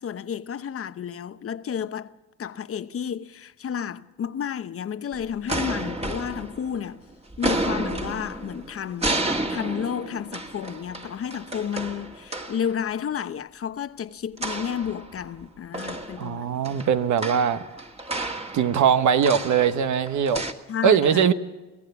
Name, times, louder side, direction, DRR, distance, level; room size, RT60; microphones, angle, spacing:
voice 1, 0.0-2.1 2.4-7.0 7.4-9.1 9.5-16.8 20.7-21.3, left 8 dB, 50° left, 0.9 m, -31 dB
sound 1, 5.1-7.0 7.3-12.7 14.4-15.4 15.7-20.5, right 2 dB, 20° right, 2.1 m, -31 dB
voice 2, 16.2-17.6 18.5-20.4 20.8-21.3, right 7 dB, 70° right, 1.3 m, -21 dB
24.0 x 16.0 x 7.0 m
cardioid pair, 90°, 30 cm